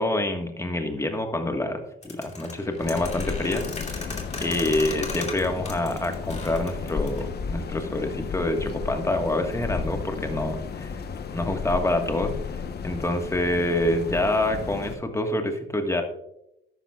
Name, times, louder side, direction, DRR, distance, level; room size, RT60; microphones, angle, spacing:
voice 1, 0.0-11.0 11.3-16.0, left 1 dB, 15° left, 5 dB, 1.5 m, -27 dB
sound 1, 2.0-7.3, left 3 dB, 35° left, 2.5 m, -37 dB
sound 2, 2.8-15.0, left 5 dB, 55° left, 1.1 m, -33 dB
13.0 x 10.0 x 2.4 m, 0.82 s
cardioid pair, 90°, 20 cm